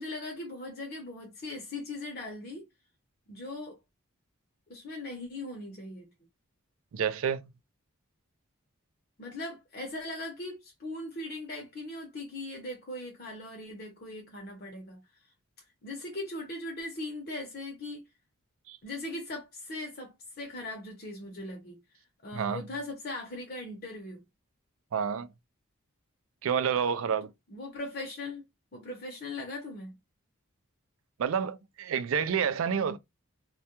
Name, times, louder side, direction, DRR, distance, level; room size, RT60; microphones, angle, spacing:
voice 1, 0.0-2.6 3.3-3.8 4.7-6.1 9.2-15.0 15.8-18.0 18.8-21.8 22.2-24.2 27.5-28.4 28.7-30.0, left 2 dB, 45° left, 0.7 m, -39 dB
voice 2, 6.9-7.5 18.7-18.8 22.3-22.6 24.9-25.3 26.4-27.3 31.2-33.0, right 7 dB, 75° right, 0.4 m, -29 dB
2.2 x 2.1 x 2.9 m
head